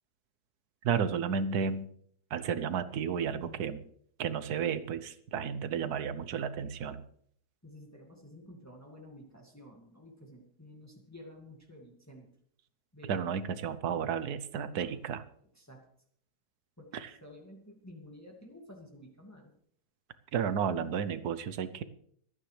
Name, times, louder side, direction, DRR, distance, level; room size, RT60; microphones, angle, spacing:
voice 1, 0.8-1.9 2.3-3.8 4.2-7.0 13.1-15.2 16.9-17.1 20.3-21.8, right 7 dB, 75° right, 13 dB, 1.4 m, -32 dB
voice 2, 3.3-3.8 7.6-12.3 12.9-13.5 14.6-14.9 15.5-15.8 16.8-19.5, left 1 dB, 10° left, 0 dB, 2.1 m, -51 dB
26.0 x 9.4 x 3.3 m, 0.65 s
omnidirectional pair, 1.7 m